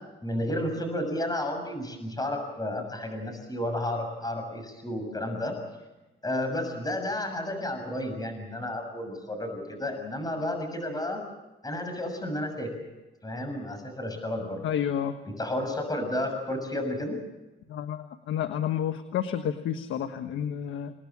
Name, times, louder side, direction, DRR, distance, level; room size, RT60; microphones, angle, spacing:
voice 1, 0.2-5.5 6.2-11.2 11.6-12.7 13.2-14.7 15.2-17.2, left 1 dB, 20° left, 6 dB, 6.9 m, -32 dB
voice 2, 14.6-15.2 17.7-20.9, left 9 dB, 80° left, 8 dB, 1.4 m, -30 dB
28.5 x 19.5 x 7.3 m, 1.1 s
cardioid pair, 90°, 20 cm